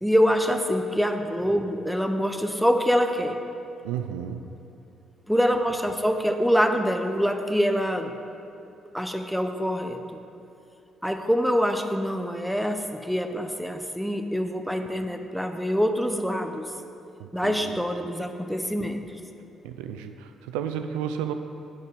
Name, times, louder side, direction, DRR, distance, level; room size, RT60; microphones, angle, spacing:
voice 1, 0.0-3.4 5.3-8.1 8.9-10.2 11.0-16.7 17.3-19.0, equal, ahead, 6 dB, 0.8 m, -25 dB
voice 2, 3.8-4.5 17.2-17.8 19.6-21.3, right 9 dB, 85° right, 8 dB, 0.3 m, -32 dB
8.4 x 4.3 x 6.9 m, 2.8 s
hypercardioid pair, 50°, 0 cm